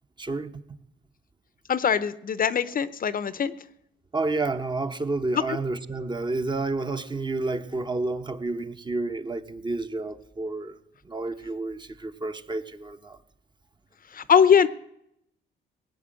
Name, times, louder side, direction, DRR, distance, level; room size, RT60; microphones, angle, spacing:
voice 1, 0.2-0.6 4.1-10.7 11.1-13.2, right 3 dB, 25° right, 9 dB, 1.0 m, -30 dB
voice 2, 1.7-3.5 14.1-14.7, left 7 dB, 45° left, 16 dB, 0.7 m, -21 dB
17.5 x 8.9 x 7.6 m, 0.76 s
cardioid pair, 90°, 20 cm